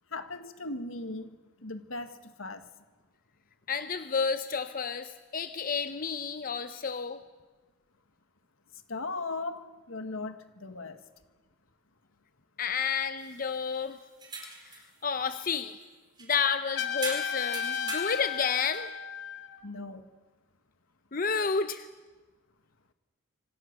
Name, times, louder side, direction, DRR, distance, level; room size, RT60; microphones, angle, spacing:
voice 1, 0.1-2.7 8.9-11.0 19.6-20.1, left 3 dB, 75° left, 9 dB, 1.8 m, -38 dB
voice 2, 3.7-7.2 12.6-14.0 14.6-15.8 16.2-18.9 21.1-21.9, left 6 dB, 40° left, 10 dB, 0.8 m, -31 dB
sound 1, 13.2-13.8 14.2-14.9 15.3-15.8 16.2-16.3 17.0-18.8, right 3 dB, 20° right, 4.3 m, -41 dB
Trumpet, 16.8-19.6, left 8 dB, 60° left, 2.2 m, -34 dB
26.5 x 25.5 x 6.8 m, 1.3 s
head